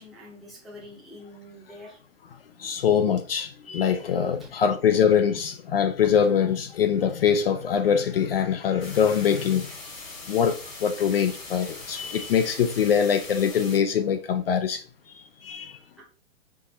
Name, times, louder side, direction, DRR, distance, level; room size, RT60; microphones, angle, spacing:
voice 1, 0.0-2.0 4.4-4.5 16.0-16.1, left 1 dB, ahead, 0.7 m, -45 dB
voice 2, 2.6-9.7 10.3-14.8 15.1-15.8, left 7 dB, 50° left, 0.4 m, -23 dB
sound 1, 8.8-13.8, left 2 dB, 85° left, 2.3 m, -41 dB
4.6 x 2.5 x 4.0 m
hypercardioid pair, 155°, 39 cm